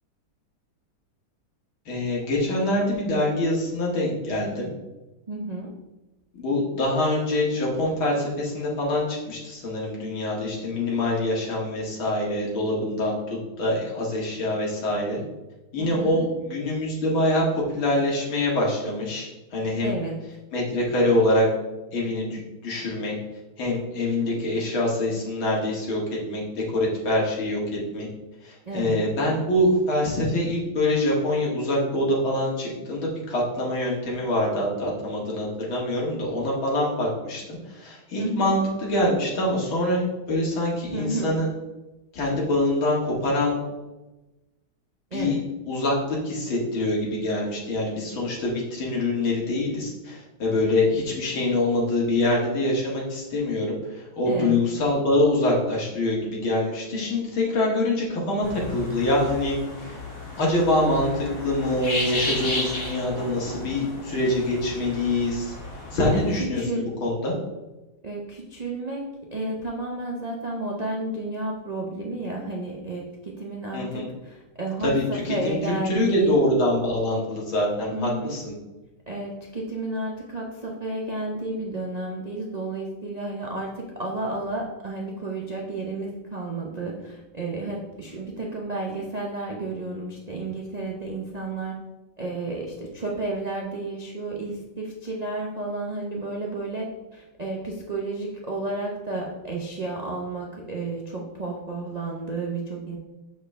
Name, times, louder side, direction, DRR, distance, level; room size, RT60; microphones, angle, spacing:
voice 1, 1.9-4.7 6.4-15.2 15.7-19.9 20.5-21.5 21.9-23.1 23.6-26.0 26.3-26.4 26.7-27.6 27.9-28.1 28.4-41.5 42.1-43.6 45.1-45.4 45.7-59.6 60.4-65.5 65.9-67.3 73.7-74.1 74.8-78.5, left 1 dB, 75° left, -3 dB, 2.7 m, -25 dB
voice 2, 5.3-5.7 15.8-16.3 19.8-20.2 28.6-29.0 38.2-38.6 40.9-41.4 45.1-45.4 54.2-54.6 66.0-66.9 68.0-76.4 77.9-78.4 79.1-91.7 92.2-103.0, right 2 dB, 65° right, -2 dB, 0.4 m, -32 dB
sound 1, 58.4-66.4, left 2 dB, 45° left, 1.9 m, -33 dB
6.8 x 6.5 x 3.4 m, 1.1 s
omnidirectional pair, 2.2 m